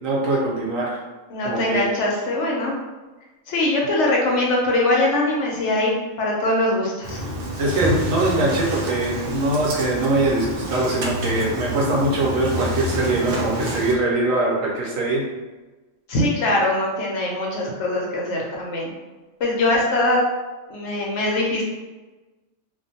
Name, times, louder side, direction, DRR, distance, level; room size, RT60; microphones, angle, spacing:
voice 1, 0.0-1.0 1.4-1.8 7.6-15.2, right 2 dB, 80° right, -3 dB, 1.1 m, -22 dB
voice 2, 1.3-2.7 3.5-5.9 6.2-7.2 16.1-18.9 19.4-20.2 20.7-21.6, left 1 dB, 65° left, -2 dB, 0.8 m, -22 dB
Engine starting, 7.0-13.9, right 1 dB, 65° right, 0.6 m, -28 dB
2.5 x 2.1 x 2.7 m, 1.2 s
omnidirectional pair, 1.4 m